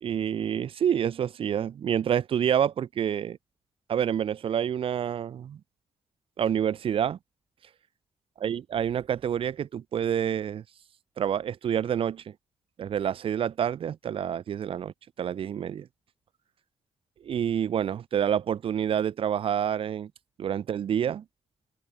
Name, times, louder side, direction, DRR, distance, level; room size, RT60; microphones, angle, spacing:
voice 1, 0.0-3.4 3.9-5.6 6.4-7.2 8.4-10.6 11.2-12.3 12.8-14.9 15.2-15.9 17.2-20.1 20.4-21.2, right 9 dB, 55° right, 0.6 m, -28 dB
open air
cardioid pair, 130°, 11 cm